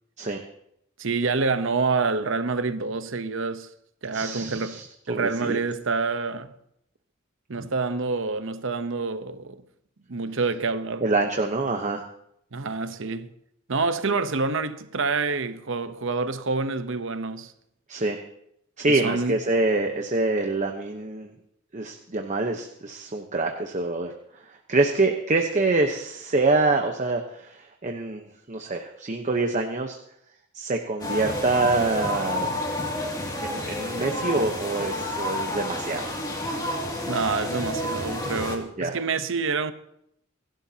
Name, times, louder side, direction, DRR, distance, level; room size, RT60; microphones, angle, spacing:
voice 1, 1.0-3.7 4.0-4.8 5.1-6.5 7.5-9.6 10.1-11.0 12.5-13.3 13.7-17.5 18.9-19.4 37.1-39.7, right 4 dB, 65° right, 0.9 m, -27 dB
voice 2, 4.1-5.6 7.6-7.7 11.0-12.0 17.9-18.2 18.8-21.3 21.7-24.1 24.5-28.2 28.5-30.0 30.5-32.5 33.4-36.1 38.8-39.0, right 2 dB, 35° right, 1.0 m, -25 dB
sound 1, 31.0-38.6, left 1 dB, 20° left, 2.4 m, -30 dB
29.0 x 11.5 x 2.9 m
head